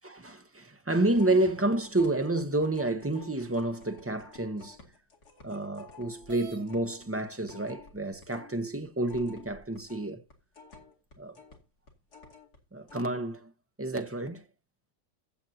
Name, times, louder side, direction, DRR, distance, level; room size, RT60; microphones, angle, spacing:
voice 1, 0.0-4.8 5.4-10.2 11.2-11.3 12.7-13.5 13.8-14.4, right 2 dB, 15° right, 0.5 m, -29 dB
sound 1, 1.1-8.6 8.8-12.6 12.9-13.0, left 4 dB, 85° left, 2.9 m, -52 dB
sound 2, 6.3-6.7 7.7-7.8 8.4-8.5 9.1-9.8, equal, 65° right, 1.8 m, -49 dB
15.5 x 7.6 x 2.8 m
omnidirectional pair, 1.7 m